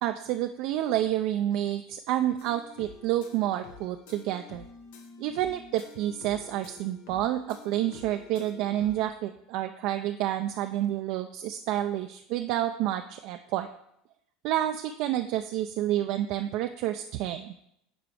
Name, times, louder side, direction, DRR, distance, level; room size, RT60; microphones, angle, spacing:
voice 1, 0.0-4.6 5.2-13.7 14.4-17.6, right 13 dB, 65° right, 7 dB, 0.3 m, -29 dB
sound 1, 2.4-9.1, left 5 dB, 80° left, 0.9 m, -49 dB
8.9 x 4.7 x 3.4 m, 0.76 s
supercardioid pair, 120°, 0 cm